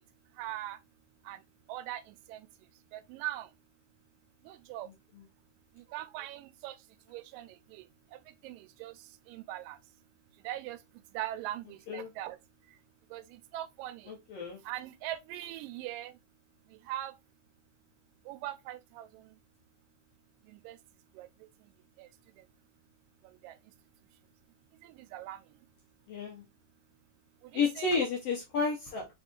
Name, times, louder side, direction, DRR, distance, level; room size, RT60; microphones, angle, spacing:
voice 1, 0.4-0.8 1.3-1.4 1.7-2.5 2.9-3.5 4.5-4.9 5.9-6.8 7.1-7.8 8.4-8.9 9.3-9.8 10.4-10.8 11.1-12.4 13.1-13.2 13.5-14.1 14.7-16.1 16.9-17.1 18.3-19.2 20.5-20.8 21.2-21.3 22.0-22.1 23.4-23.6 24.8-25.4 27.5-27.9, right 14 dB, 90° right, 2.2 m, -40 dB
voice 2, 14.1-14.6 26.1-26.4 27.5-29.1, left 4 dB, 70° left, 1.5 m, -31 dB
4.7 x 3.6 x 2.3 m
omnidirectional pair, 3.8 m